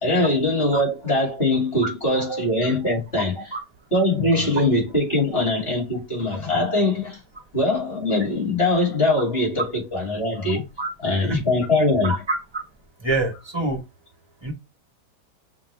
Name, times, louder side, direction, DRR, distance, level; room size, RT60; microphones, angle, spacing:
voice 1, 0.0-3.5 3.9-7.2 7.5-10.6 11.0-12.1, left 2 dB, 35° left, 2.4 m, -22 dB
voice 2, 12.0-12.6 13.0-13.8 14.4-14.5, right 2 dB, 20° right, 0.8 m, -26 dB
5.9 x 2.6 x 3.2 m
omnidirectional pair, 1.8 m